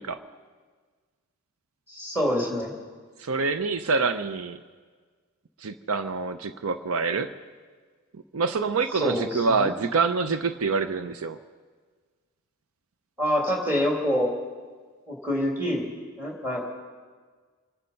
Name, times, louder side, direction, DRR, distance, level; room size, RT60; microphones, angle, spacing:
voice 1, 1.9-2.7 9.0-9.7 13.2-14.3 15.1-15.9 16.2-16.7, equal, 10° right, -1 dB, 2.9 m, -26 dB
voice 2, 3.2-4.6 5.6-7.3 8.3-11.4, right 4 dB, 75° right, 10 dB, 0.6 m, -26 dB
26.0 x 10.0 x 5.3 m, 1.5 s
head